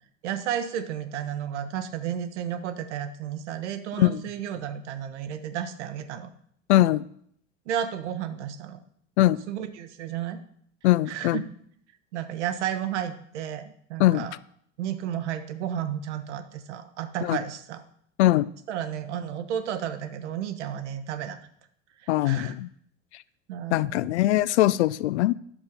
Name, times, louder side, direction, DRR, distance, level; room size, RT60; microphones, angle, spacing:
voice 1, 0.2-6.3 7.7-8.8 9.5-10.4 11.1-11.4 12.1-14.3 14.8-17.8 18.7-21.4 22.0-22.5 23.5-24.1, right 9 dB, 65° right, 9 dB, 1.1 m, -32 dB
voice 2, 6.7-7.0 9.2-9.4 10.8-11.4 14.0-14.3 17.2-17.4 18.2-18.5 22.1-22.7 23.7-25.3, left 15 dB, 65° left, 18 dB, 0.5 m, -21 dB
10.5 x 6.6 x 5.2 m, 0.66 s
figure-of-eight pair, 75°, 37 cm